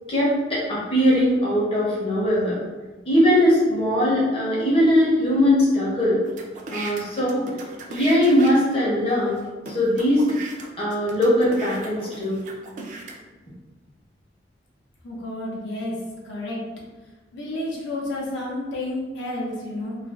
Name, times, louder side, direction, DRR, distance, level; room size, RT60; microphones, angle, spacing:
voice 1, 0.1-2.6 3.1-6.2 6.7-7.4 7.9-9.4 9.7-10.4 10.8-12.4, equal, 30° left, -7 dB, 0.7 m, -20 dB
sound 1, 6.3-8.8 9.4-9.5 9.7-13.1, right 3 dB, 45° right, 0.3 m, -37 dB
voice 2, 15.0-16.0 16.2-16.6 17.3-20.0, left 1 dB, 85° left, -4 dB, 0.6 m, -30 dB
2.4 x 2.2 x 2.3 m, 1.2 s
head